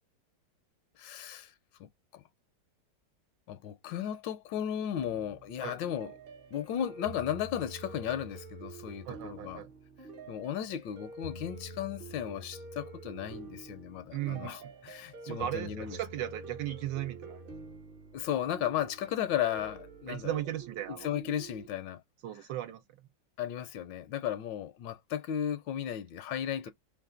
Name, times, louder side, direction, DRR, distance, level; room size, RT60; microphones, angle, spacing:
voice 1, 1.0-1.5 1.8-2.2 3.5-6.1 6.5-9.7 10.3-16.0 18.1-20.4 21.0-22.0 23.4-26.7, left 10 dB, 85° left, 1.3 m, -35 dB
sound 1, 5.0-21.7, right 2 dB, 55° right, 0.6 m, -47 dB
voice 2, 9.0-9.7 14.1-14.6 15.3-17.5 20.1-21.1 22.2-22.8, right 12 dB, 75° right, 1.3 m, -36 dB
3.3 x 2.4 x 3.6 m
omnidirectional pair, 2.0 m